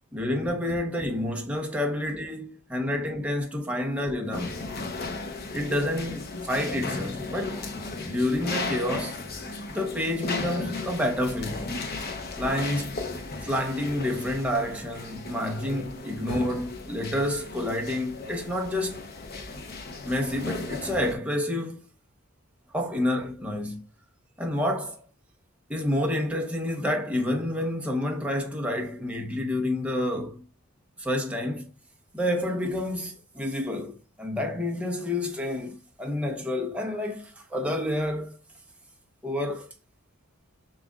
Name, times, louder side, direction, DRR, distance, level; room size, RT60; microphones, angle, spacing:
voice 1, 0.1-4.6 5.5-9.2 9.7-11.7 12.4-13.0 13.4-19.1 20.0-21.9 22.7-23.8 24.4-25.0 25.7-30.4 31.0-31.7 32.1-38.4 39.2-39.7, left 1 dB, 5° right, 0.9 m, -29 dB
sound 1, 4.3-21.1, left 3 dB, 50° left, 0.8 m, -35 dB
7.2 x 2.5 x 2.4 m
head